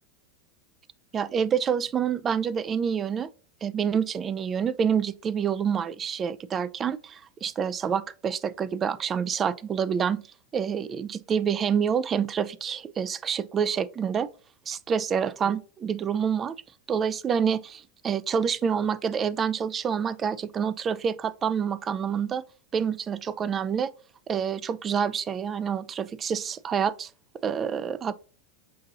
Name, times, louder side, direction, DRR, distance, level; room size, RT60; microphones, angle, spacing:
voice 1, 1.1-3.3 3.6-10.2 10.5-14.3 14.7-16.6 16.9-22.4 22.7-23.9 24.3-27.1 27.4-28.1, right 7 dB, 30° right, 0.3 m, -27 dB
5.6 x 2.7 x 2.5 m
hypercardioid pair, 100°, 0 cm